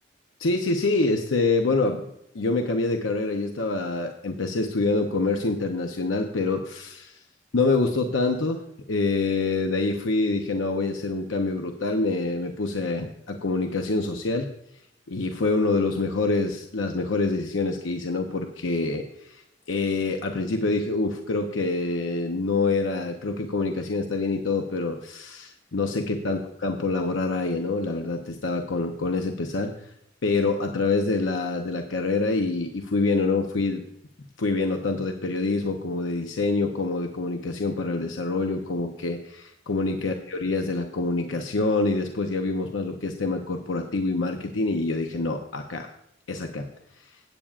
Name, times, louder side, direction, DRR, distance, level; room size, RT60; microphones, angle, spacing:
voice 1, 0.4-2.0 2.3-7.2 7.5-14.5 15.1-19.4 19.7-29.7 30.2-33.8 34.4-45.9 46.3-46.7 47.0-47.1, left 3 dB, 90° left, 4 dB, 0.8 m, -26 dB
16.0 x 8.6 x 2.4 m, 0.79 s
head